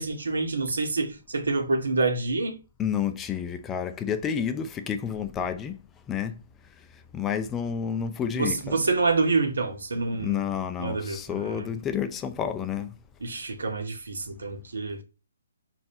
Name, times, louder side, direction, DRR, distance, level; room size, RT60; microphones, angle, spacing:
voice 1, 0.0-2.6 8.3-10.4 10.8-11.7 13.2-15.0, right 3 dB, 80° right, 2.2 m, -27 dB
voice 2, 2.8-5.8 6.1-6.3 7.1-8.7 10.2-12.9, left 8 dB, 15° left, 0.7 m, -30 dB
5.4 x 4.5 x 5.9 m
hypercardioid pair, 150°, 0 cm